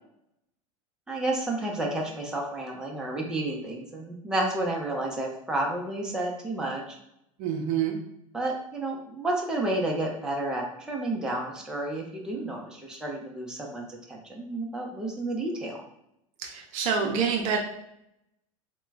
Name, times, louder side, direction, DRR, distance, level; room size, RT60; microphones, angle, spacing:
voice 1, 1.1-7.0 8.3-15.8, right 2 dB, 5° right, -1 dB, 0.6 m, -31 dB
voice 2, 7.4-8.0 16.4-17.6, right 6 dB, 50° right, 2 dB, 0.6 m, -27 dB
3.0 x 2.2 x 3.4 m, 0.78 s
hypercardioid pair, 100°, 18 cm